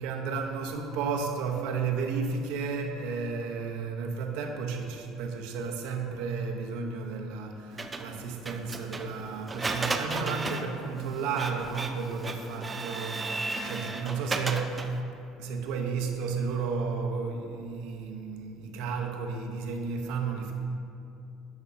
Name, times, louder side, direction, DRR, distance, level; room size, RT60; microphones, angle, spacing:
voice 1, 0.0-15.0 15.4-20.5, right 5 dB, 80° right, 2 dB, 0.8 m, -33 dB
Printer, 7.8-15.0, right 3 dB, 20° right, 0.4 m, -35 dB
10.5 x 6.1 x 2.7 m, 2.7 s
cardioid pair, 120°, 0 cm